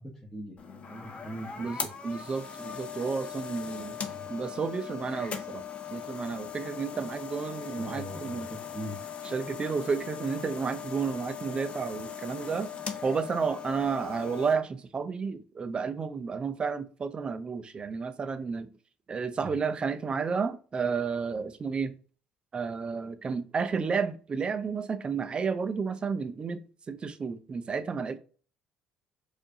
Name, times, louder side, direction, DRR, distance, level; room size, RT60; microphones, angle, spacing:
voice 1, 0.0-1.5 4.0-4.3 7.8-9.0 19.4-19.6, equal, 10° left, 1.0 m, -41 dB
sound 1, 0.6-14.5, left 7 dB, 40° left, 0.7 m, -39 dB
voice 2, 2.0-4.0 4.3-8.5 9.2-12.7 13.0-18.7 19.1-22.0 22.5-26.6 26.9-28.2, right 5 dB, 35° right, 0.5 m, -31 dB
4.5 x 2.6 x 2.7 m
supercardioid pair, 85°, 3 cm